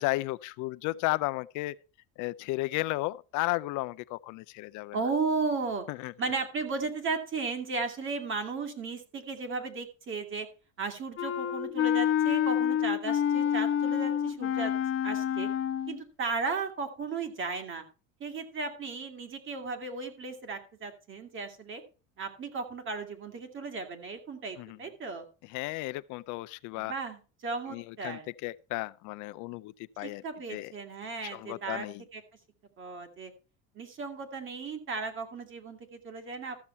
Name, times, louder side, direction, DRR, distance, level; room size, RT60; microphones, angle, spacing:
voice 1, 0.0-1.7 2.2-5.0 5.9-6.1 24.6-24.8 25.5-26.9 27.7-30.2 30.5-30.7 31.2-32.0, left 20 dB, 60° left, 0.5 m, -34 dB
voice 2, 4.9-5.9 6.2-10.5 10.8-14.7 15.0-15.5 15.9-17.8 18.2-21.8 22.2-25.2 26.7-28.3 30.0-31.9 32.1-32.2 32.8-33.3 33.7-36.6, right 4 dB, 35° right, 2.4 m, -35 dB
Wind instrument woodwind instrument, 11.2-16.0, left 9 dB, 40° left, 1.2 m, -28 dB
13.5 x 7.1 x 4.4 m
cardioid pair, 135°, 34 cm